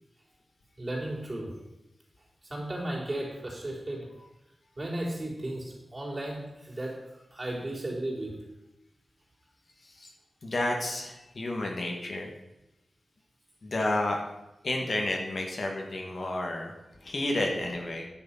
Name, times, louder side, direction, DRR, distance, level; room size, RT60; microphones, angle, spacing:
voice 1, 0.8-1.6 2.4-4.1 4.8-8.4, right 1 dB, 30° right, -4 dB, 3.9 m, -35 dB
voice 2, 10.4-12.3 13.6-14.2 14.6-16.7 17.0-18.1, left 1 dB, 55° left, 1 dB, 1.9 m, -31 dB
10.5 x 6.8 x 5.8 m, 0.93 s
wide cardioid pair, 100°, 0 cm